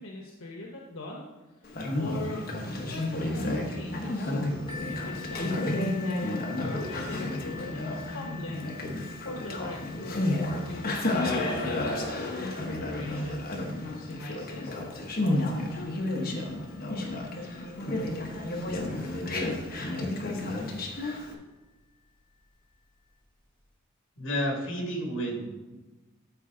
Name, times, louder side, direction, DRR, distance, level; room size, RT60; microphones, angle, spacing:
voice 1, 0.0-2.5 2.9-4.3 4.9-9.0 9.2-10.3 10.6-11.9 12.7-13.4 13.8-14.8 15.2-16.1, left 2 dB, 85° left, -1 dB, 1.1 m, -41 dB
Conversation, 1.6-21.3, left 1 dB, 45° left, 1.2 m, -31 dB
sound 1, 4.7-20.2 21.0-21.1 21.6-21.7, left 7 dB, 25° left, 1.1 m, -49 dB
voice 2, 24.2-25.8, equal, 65° left, -1 dB, 2.2 m, -31 dB
13.0 x 4.7 x 3.8 m, 1.1 s
head